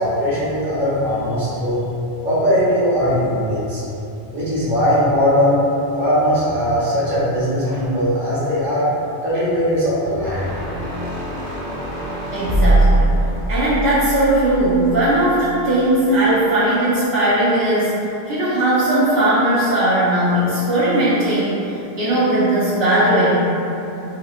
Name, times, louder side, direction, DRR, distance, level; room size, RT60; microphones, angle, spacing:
voice 1, 0.0-1.8 2.2-3.8 4.3-5.6 6.0-8.9 9.2-10.6, equal, 50° right, -10 dB, 1.2 m, -19 dB
sound 1, 10.2-15.4, right 1 dB, 20° right, 0.6 m, -21 dB
voice 2, 12.3-13.1 13.5-18.0 18.3-23.3, right 1 dB, 75° right, -11 dB, 1.0 m, -18 dB
4.2 x 2.8 x 2.4 m, 2.9 s
omnidirectional pair, 1.1 m